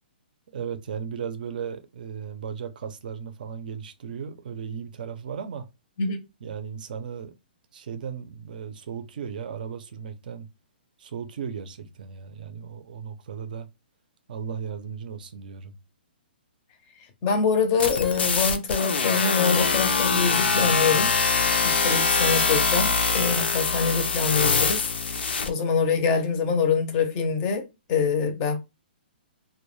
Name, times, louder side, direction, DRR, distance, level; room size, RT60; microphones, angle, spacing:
voice 1, 0.5-5.7 6.4-7.3 7.7-10.5 11.0-13.7 14.3-15.8, right 7 dB, 55° right, 0.5 m, -36 dB
voice 2, 17.2-21.1 21.6-28.6, left 5 dB, 25° left, 0.5 m, -25 dB
sound 1, 17.8-25.5, left 5 dB, 85° left, 0.5 m, -23 dB
2.2 x 2.1 x 3.0 m
hypercardioid pair, 160°, 6 cm